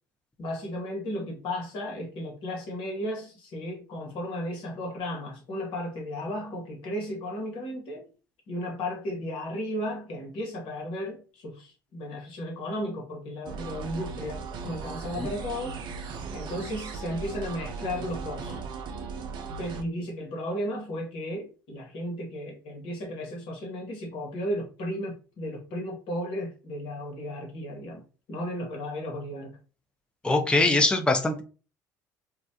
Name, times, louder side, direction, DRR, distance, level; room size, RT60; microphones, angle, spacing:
voice 1, 0.4-8.1 8.5-15.8 16.3-18.6 19.6-28.0 28.3-29.6, left 1 dB, 60° left, 1.1 m, -34 dB
sound 1, 13.4-19.8, right 5 dB, 50° right, 0.4 m, -37 dB
voice 2, 30.2-31.4, left 2 dB, 10° left, 0.6 m, -22 dB
2.4 x 2.1 x 2.7 m
hypercardioid pair, 60°, 10 cm